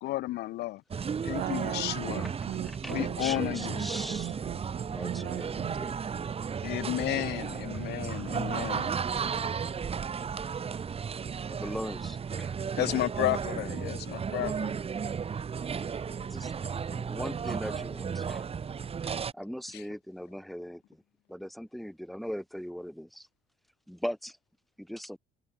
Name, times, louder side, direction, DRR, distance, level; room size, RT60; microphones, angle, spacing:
voice 1, 0.0-0.8 1.2-2.3 2.9-3.9 6.6-8.9 12.8-14.8 19.7-19.8, left 17 dB, 80° left, 2.6 m, -32 dB
sound 1, 0.9-19.3, right 6 dB, 35° right, 2.9 m, -34 dB
voice 2, 1.3-3.7 4.1-5.8, right 15 dB, 75° right, 1.8 m, -39 dB
voice 3, 2.8-4.4 4.9-6.0 7.2-7.8 8.2-8.6 11.5-12.5 16.3-16.5 16.8-18.5 19.0-21.0 21.3-23.3 23.9-24.4 24.8-25.2, equal, ahead, 1.7 m, -40 dB
cardioid pair, 110°, 17 cm